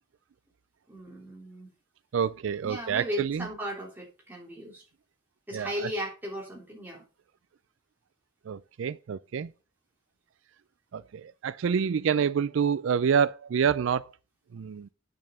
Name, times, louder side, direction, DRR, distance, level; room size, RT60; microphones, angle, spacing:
voice 1, 0.9-1.7 2.6-4.8 5.5-7.0, equal, 10° right, 3.3 m, -36 dB
voice 2, 2.1-3.5 5.5-5.9 8.5-9.5 10.9-14.1 14.5-14.9, right 7 dB, 70° right, 0.4 m, -27 dB
8.7 x 6.4 x 5.6 m
head